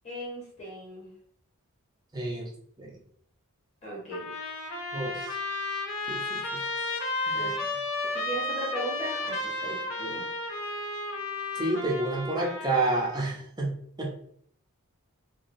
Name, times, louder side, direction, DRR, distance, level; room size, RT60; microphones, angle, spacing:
voice 1, 0.0-1.1 3.8-4.3 7.3-7.6 8.1-10.2, right 1 dB, 30° left, -3 dB, 1.0 m, -37 dB
voice 2, 2.1-2.5 2.8-2.9 4.9-5.3 6.1-6.4 7.2-7.5 11.6-13.7 14.0-14.1, right 2 dB, 20° right, -2 dB, 0.5 m, -29 dB
Trumpet, 4.1-13.3, left 2 dB, 65° left, 0.6 m, -33 dB
3.0 x 2.2 x 2.6 m, 0.64 s
head